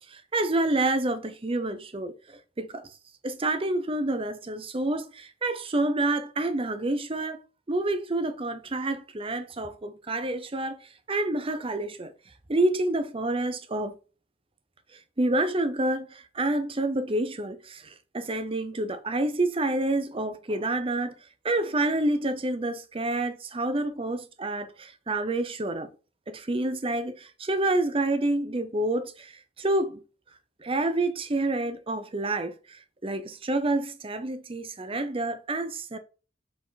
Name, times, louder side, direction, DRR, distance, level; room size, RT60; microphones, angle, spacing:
voice 1, 0.1-2.9 3.2-7.4 7.7-12.1 12.5-13.9 15.2-21.1 21.4-25.9 26.3-30.0 30.6-36.0, right 2 dB, 30° right, 0.7 m, -28 dB
7.4 x 3.7 x 4.0 m
head